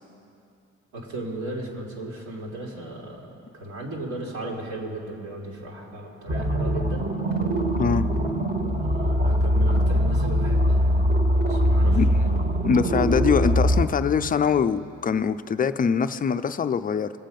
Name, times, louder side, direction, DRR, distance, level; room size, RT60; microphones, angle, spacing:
voice 1, 0.9-7.0 8.7-10.9 11.5-12.0 12.3-12.6, right 1 dB, 70° right, -3 dB, 2.8 m, -36 dB
sound 1, 6.3-13.8, equal, 35° right, 1.7 m, -22 dB
voice 2, 7.8-8.1 11.9-12.1 12.6-17.1, left 6 dB, 30° left, 12 dB, 0.4 m, -23 dB
21.0 x 7.4 x 5.2 m, 2.6 s
cardioid pair, 90°, 30 cm